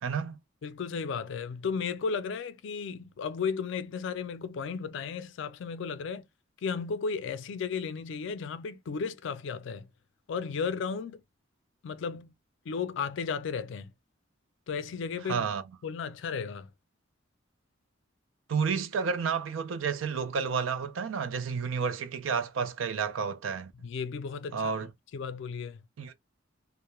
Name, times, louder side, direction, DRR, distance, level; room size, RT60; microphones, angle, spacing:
voice 1, 0.0-0.4 15.2-15.6 18.5-23.7 24.5-24.9 26.0-26.1, right 6 dB, 80° right, 0.4 m, -31 dB
voice 2, 0.6-6.3 6.6-9.9 10.3-11.2 11.8-12.3 12.7-13.9 14.7-15.5 15.8-16.7 23.8-24.7 25.1-25.8, left 5 dB, 65° left, 0.4 m, -34 dB
2.2 x 2.0 x 2.9 m
head